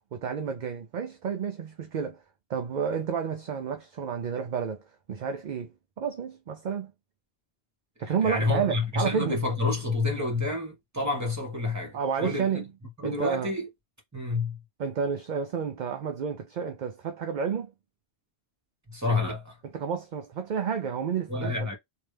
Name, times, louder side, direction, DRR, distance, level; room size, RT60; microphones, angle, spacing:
voice 1, 0.1-2.2 2.5-6.9 8.0-9.4 11.9-12.7 13.0-13.5 14.8-17.7 19.7-21.7, right 6 dB, 55° right, 0.6 m, -30 dB
voice 2, 8.1-12.6 13.0-13.7 14.1-14.6 18.9-19.6 21.3-21.8, left 3 dB, 15° right, 1.6 m, -29 dB
3.2 x 2.6 x 3.3 m
omnidirectional pair, 1.1 m